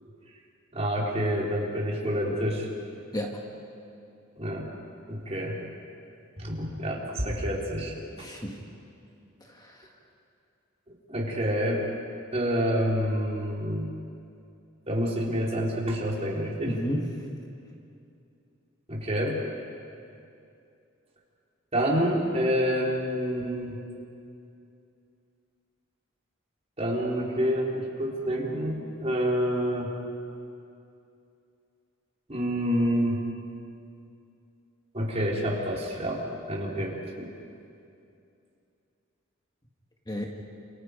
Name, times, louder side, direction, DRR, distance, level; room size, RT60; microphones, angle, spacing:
voice 1, 0.7-2.7 4.4-4.7 5.1-5.6 6.4-7.9 11.1-11.8 12.3-13.9 14.9-16.7 18.9-19.4 21.7-23.8 26.8-29.9 32.3-33.2 34.9-37.3, equal, 30° right, -3 dB, 4.1 m, -28 dB
voice 2, 3.1-3.4 8.2-8.6 9.4-9.9 16.7-17.2 40.1-40.3, equal, 20° left, 0 dB, 1.8 m, -32 dB
29.0 x 28.0 x 5.2 m, 2.6 s
head